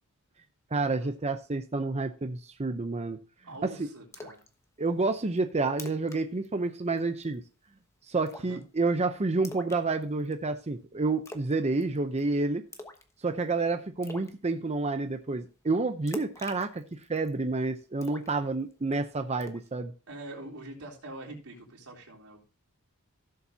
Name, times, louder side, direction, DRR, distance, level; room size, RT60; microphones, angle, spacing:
voice 1, 0.7-3.2 3.6-3.9 4.8-7.4 8.1-12.6 13.2-19.9, right 3 dB, 30° right, 7 dB, 0.7 m, -29 dB
voice 2, 3.4-4.4 8.4-8.6 20.1-22.4, right 2 dB, 85° right, -2 dB, 3.8 m, -44 dB
Splash splatter, 4.1-4.5 4.9-5.0 5.4-5.5 5.7-6.2 6.4-6.7 7.0-7.3 8.3-8.6 9.4-10.3 11.3-11.6 11.8-12.2 12.7-13.1 13.4-13.5 14.0-14.3 16.1-17.3 18.0-18.9 19.4-19.7, left 2 dB, 15° left, 1.1 m, -44 dB
16.5 x 7.1 x 2.8 m, 0.33 s
head